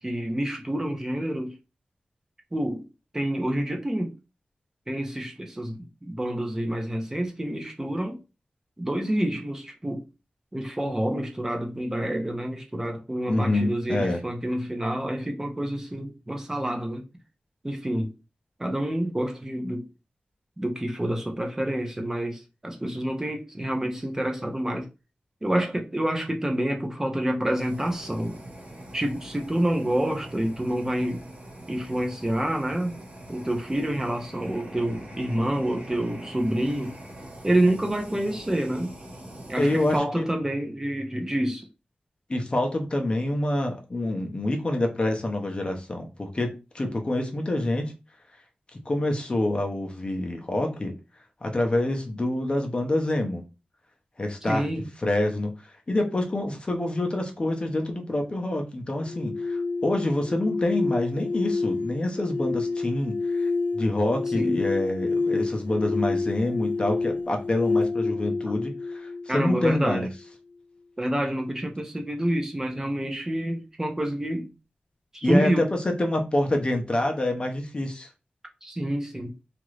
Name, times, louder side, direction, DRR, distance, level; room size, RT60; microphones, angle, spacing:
voice 1, 0.0-1.5 2.5-2.9 3.1-4.1 4.9-8.2 8.8-10.1 10.5-17.0 17.6-18.1 18.6-19.8 20.6-24.9 25.4-28.4 28.9-31.2 31.7-33.0 33.3-36.9 37.4-38.9 39.5-41.7 54.5-54.9 64.3-64.6 69.3-70.0 71.0-74.5 75.1-75.7 78.6-79.3, right 1 dB, 15° right, 0.6 m, -28 dB
voice 2, 13.3-14.2 39.6-40.3 42.3-47.9 48.9-50.9 51.4-53.4 54.2-54.7 55.0-70.1 75.2-78.1, left 1 dB, 35° left, 0.6 m, -27 dB
Fire, 27.6-40.0, right 1 dB, 55° right, 1.1 m, -43 dB
sound 1, 59.0-70.1, left 3 dB, 80° left, 0.5 m, -29 dB
2.9 x 2.5 x 3.1 m
wide cardioid pair, 115°, 3 cm